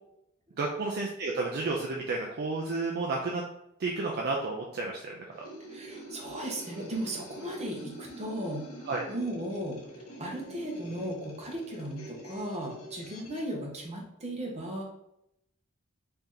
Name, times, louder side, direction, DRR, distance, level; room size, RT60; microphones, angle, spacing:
voice 1, 0.6-3.4 3.8-5.2 8.9-9.0, right 3 dB, 50° right, -1 dB, 0.4 m, -31 dB
sound 1, 5.3-13.5, right 1 dB, 80° left, 0.8 m, -46 dB
voice 2, 5.7-14.8, right 1 dB, 30° right, 0 dB, 0.9 m, -36 dB
3.2 x 2.8 x 3.7 m, 0.80 s
head